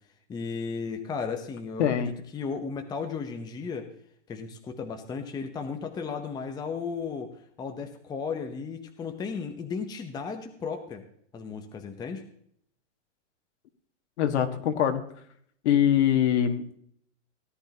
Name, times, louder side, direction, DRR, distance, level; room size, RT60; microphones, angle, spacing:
voice 1, 0.3-3.9 4.3-11.0 11.3-12.3, left 5 dB, 10° left, 5 dB, 0.8 m, -35 dB
voice 2, 1.8-2.1 14.2-15.0 15.6-16.8, left 10 dB, 65° left, 6 dB, 1.8 m, -23 dB
17.0 x 11.0 x 2.9 m, 0.66 s
hypercardioid pair, 145°, 37 cm